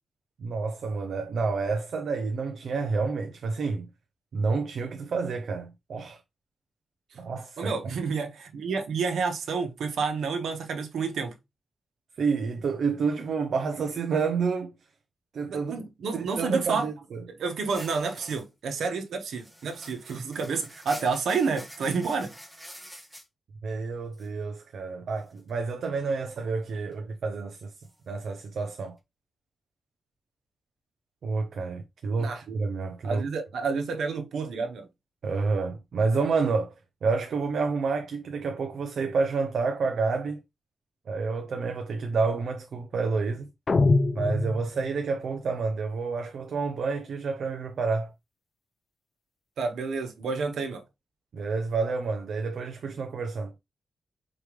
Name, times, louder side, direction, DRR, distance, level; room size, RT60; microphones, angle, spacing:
voice 1, 0.4-3.9 4.3-6.2 7.2-7.8 12.2-14.7 15.3-15.9 16.1-17.2 23.6-27.7 28.1-29.0 31.2-33.3 35.2-36.7 37.0-40.4 41.1-43.5 44.1-48.1 51.3-53.5, right 4 dB, 60° right, 0.5 m, -29 dB
voice 2, 7.6-11.3 15.5-16.9 17.4-22.3 32.2-32.4 33.0-34.9 49.6-50.8, right 4 dB, 80° right, 1.2 m, -29 dB
sound 1, 17.7-18.4 18.9-19.0 19.2-23.2 24.1-24.3 25.3-25.5 27.8-27.9, equal, ahead, 1.2 m, -46 dB
sound 2, 43.7-45.1, left 3 dB, 30° left, 0.4 m, -24 dB
4.8 x 3.4 x 3.1 m
wide cardioid pair, 170°, 0 cm